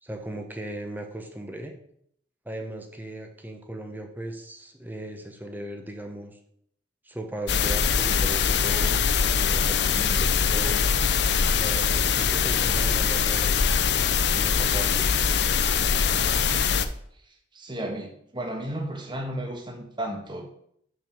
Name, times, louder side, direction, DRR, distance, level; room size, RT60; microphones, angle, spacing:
voice 1, 0.0-1.7 2.4-6.4 7.0-10.9 11.5-13.7 14.3-15.1, right 1 dB, 10° right, 4 dB, 1.1 m, -37 dB
sound 1, 7.5-16.9, left 6 dB, 65° left, 0.6 m, -23 dB
voice 2, 12.2-12.5 16.1-16.5 17.1-20.4, right 1 dB, 25° right, 3 dB, 1.5 m, -35 dB
6.9 x 6.4 x 6.9 m, 0.69 s
head